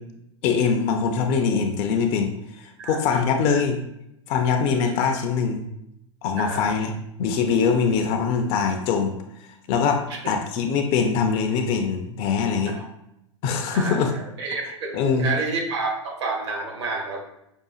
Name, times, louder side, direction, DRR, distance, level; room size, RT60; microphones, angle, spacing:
voice 1, 0.4-3.8 4.3-5.7 6.2-6.9 7.2-9.1 9.7-12.8 13.4-14.1 14.9-15.3, left 6 dB, 35° left, 5 dB, 0.4 m, -23 dB
voice 2, 2.8-3.2 6.4-6.7 10.1-10.3 12.7-12.8 13.7-17.2, right 3 dB, 60° right, 1 dB, 1.0 m, -30 dB
5.6 x 2.4 x 2.4 m, 0.83 s
figure-of-eight pair, 90°, 16 cm